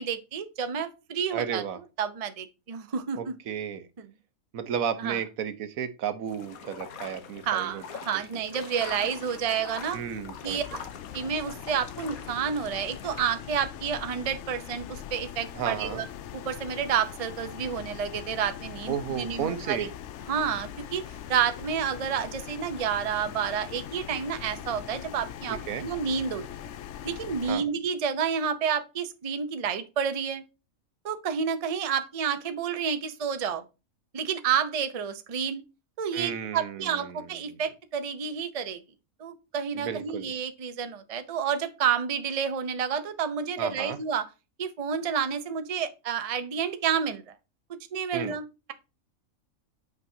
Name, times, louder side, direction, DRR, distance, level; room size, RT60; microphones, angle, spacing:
voice 1, 0.0-1.6 2.0-3.3 4.0-4.1 5.0-5.2 7.5-10.0 10.4-10.8 11.1-16.1 16.3-19.9 20.3-21.0 21.3-26.4 27.0-30.4 31.0-33.6 34.1-35.6 36.0-38.8 39.2-44.3 44.6-47.3 47.9-48.4, right 7 dB, 35° right, 0.6 m, -30 dB
voice 2, 1.3-1.8 3.2-3.9 4.5-7.8 9.9-10.8 15.5-16.0 18.9-19.9 25.7-25.8 27.5-27.7 36.1-37.6 39.8-40.3 43.6-44.0 48.1-48.4, right 8 dB, 75° right, 1.3 m, -33 dB
sound 1, 6.3-13.2, left 7 dB, 85° left, 1.4 m, -44 dB
sound 2, 8.8-27.5, left 10 dB, 65° left, 0.8 m, -42 dB
8.5 x 5.3 x 2.7 m
omnidirectional pair, 1.5 m